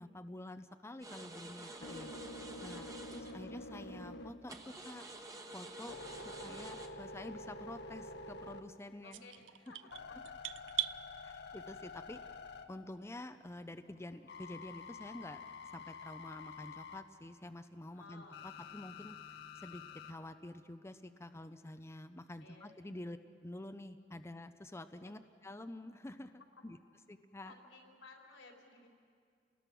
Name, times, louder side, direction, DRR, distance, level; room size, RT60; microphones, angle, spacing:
voice 1, 0.0-2.1 2.6-5.0 5.5-6.0 6.4-9.2 11.2-12.2 12.7-15.4 15.7-26.3 26.6-26.8 27.1-27.5, left 1 dB, 15° left, 9 dB, 0.5 m, -48 dB
sound 1, 1.0-3.4 4.5-6.9, right 2 dB, 20° right, 1.3 m, -49 dB
sound 2, 1.5-5.0 5.5-9.0 9.5-13.2 14.3-17.0 18.3-20.1, left 3 dB, 65° left, 1.1 m, -49 dB
voice 2, 1.9-3.4 6.2-6.5 9.0-10.2 11.1-11.4 12.1-12.3 15.8-16.0 18.0-19.0 19.6-19.8 22.4-23.0 24.9-25.2 26.4-26.7 27.4-28.9, left 3 dB, 90° left, 0 dB, 4.1 m, -59 dB
sound 3, 9.1-11.0, right 13 dB, 80° right, 0.5 m, -39 dB
29.0 x 20.0 x 6.1 m, 2.2 s
head